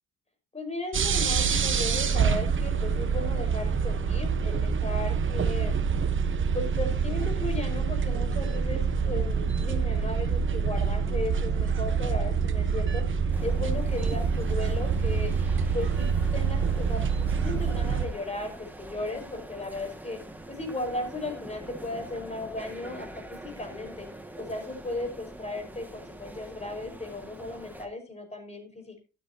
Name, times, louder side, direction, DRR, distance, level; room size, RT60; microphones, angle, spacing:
voice 1, 0.5-5.8 6.5-15.3 15.7-20.2 20.5-24.1 24.4-29.0, left 2 dB, 20° left, 5 dB, 5.4 m, -36 dB
sound 1, 0.9-18.1, right 6 dB, 40° right, 1.2 m, -26 dB
sound 2, 13.3-27.9, right 1 dB, 5° right, 2.0 m, -44 dB
13.0 x 12.0 x 2.9 m, 0.32 s
cardioid pair, 90°, 30 cm